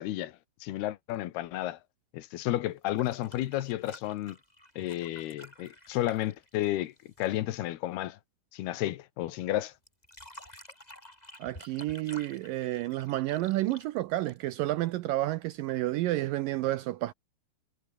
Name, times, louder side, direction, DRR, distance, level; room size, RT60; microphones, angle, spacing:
voice 1, 0.0-1.8 2.1-4.4 4.8-8.2 8.5-9.7, left 14 dB, 80° left, 3.1 m, -32 dB
sound 1, 2.8-7.4 9.9-14.7 16.1-16.2, left 1 dB, 10° left, 7.2 m, -51 dB
voice 2, 11.4-17.1, right 16 dB, 80° right, 2.0 m, -30 dB
omnidirectional pair, 4.6 m